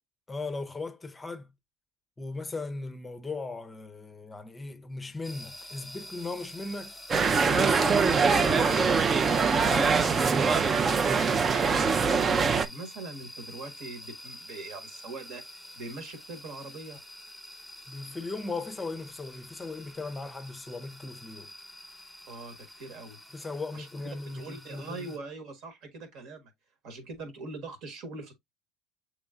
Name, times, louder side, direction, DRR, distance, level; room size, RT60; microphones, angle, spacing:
voice 1, 0.3-1.5 2.2-6.9 7.5-9.0 9.6-11.3 17.9-21.5 23.3-25.2, left 3 dB, 15° left, 0.6 m, -38 dB
sound 1, 5.2-25.2, left 1 dB, ahead, 1.1 m, -46 dB
sound 2, 7.1-12.7, right 5 dB, 30° right, 0.4 m, -23 dB
voice 2, 11.3-15.4 15.7-17.0 22.3-23.2 23.7-23.9 24.3-26.5 26.8-28.3, right 3 dB, 65° right, 1.3 m, -42 dB
6.9 x 3.1 x 2.3 m
supercardioid pair, 90°, 0 cm